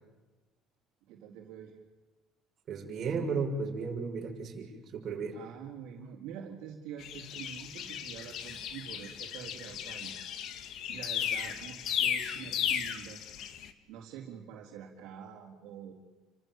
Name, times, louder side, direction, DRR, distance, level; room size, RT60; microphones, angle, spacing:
voice 1, 1.1-1.8 5.3-10.3 10.9-13.3 13.9-15.9, right 8 dB, 75° right, -1 dB, 4.2 m, -46 dB
voice 2, 2.7-5.3, right 4 dB, 40° right, 0 dB, 6.6 m, -34 dB
Bird call in spring, 7.0-13.7, left 9 dB, 55° left, 2.0 m, -35 dB
29.5 x 26.5 x 7.6 m, 1.2 s
cardioid pair, 145°, 0 cm